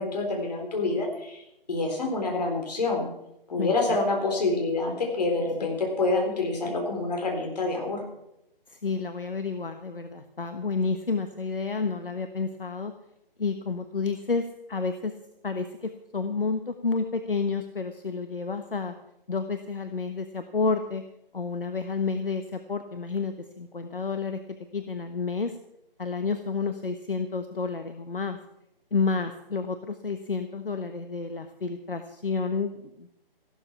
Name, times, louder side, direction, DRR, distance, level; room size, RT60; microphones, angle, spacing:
voice 1, 0.0-1.4 1.7-3.1 3.5-8.0, left 3 dB, 45° left, 1 dB, 4.2 m, -27 dB
voice 2, 3.6-4.0 8.7-12.9 13.4-15.1 15.4-18.9 19.3-21.0 21.3-24.4 24.7-25.6 26.0-28.4 28.9-33.1, left 4 dB, 65° left, 8 dB, 1.2 m, -30 dB
14.5 x 12.5 x 5.8 m, 0.82 s
figure-of-eight pair, 150°, 29 cm